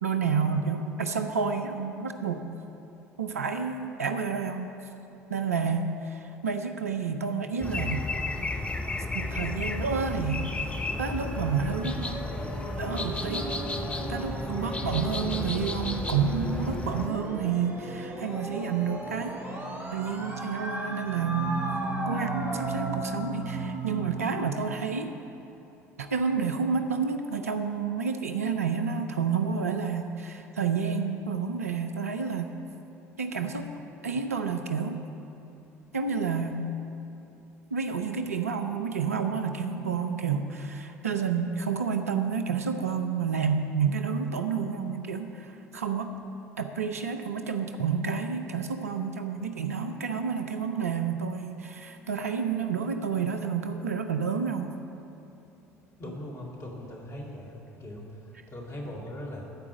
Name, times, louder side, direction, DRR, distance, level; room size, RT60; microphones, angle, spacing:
voice 1, 0.0-2.5 3.2-4.8 5.3-8.0 9.1-10.7 11.0-12.3 12.8-13.5 13.9-19.4 19.9-21.6 22.1-25.2 26.0-32.5 33.2-33.7 34.0-35.0 35.9-36.6 37.7-46.1 46.6-54.7, right 6 dB, 80° right, 6 dB, 0.6 m, -30 dB
sound 1, 7.6-17.1, left 2 dB, 15° left, 0.7 m, -33 dB
sound 2, 10.9-24.5, right 2 dB, 30° right, 2.0 m, -35 dB
voice 2, 56.0-59.5, left 1 dB, 40° left, -2 dB, 2.1 m, -40 dB
13.5 x 4.8 x 7.4 m, 2.8 s
figure-of-eight pair, 60°, 8 cm